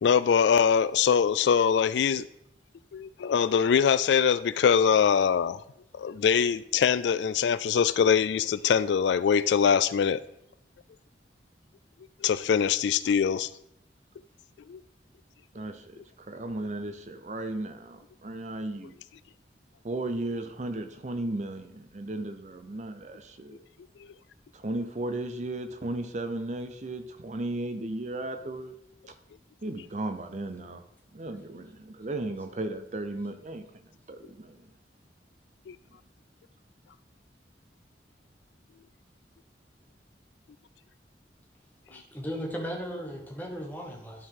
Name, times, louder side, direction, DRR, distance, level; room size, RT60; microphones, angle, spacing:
voice 1, 0.0-2.3 2.9-5.6 6.0-10.2 12.2-13.5 14.7-14.8 35.7-35.8, left 7 dB, 80° left, 15 dB, 0.3 m, -23 dB
voice 2, 15.5-19.0 19.8-23.6 24.5-28.7 29.1-29.2 29.6-30.8 31.1-33.7 34.1-34.7, right 2 dB, 40° right, 8 dB, 0.6 m, -35 dB
voice 3, 41.9-44.3, equal, 10° left, 1 dB, 1.3 m, -36 dB
12.5 x 4.7 x 3.7 m, 0.75 s
head